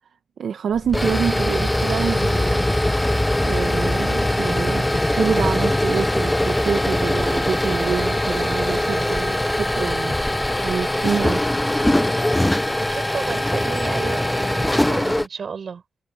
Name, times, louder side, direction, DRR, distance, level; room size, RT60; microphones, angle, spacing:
voice 1, 0.4-2.7 3.4-10.2 10.6-11.4, right 7 dB, 75° right, 1.1 m, -27 dB
sound 1, 0.7-15.3, left 1 dB, 10° left, 0.7 m, -21 dB
voice 2, 12.9-15.8, right 6 dB, 55° right, 6.1 m, -32 dB
wide cardioid pair, 115°, 0 cm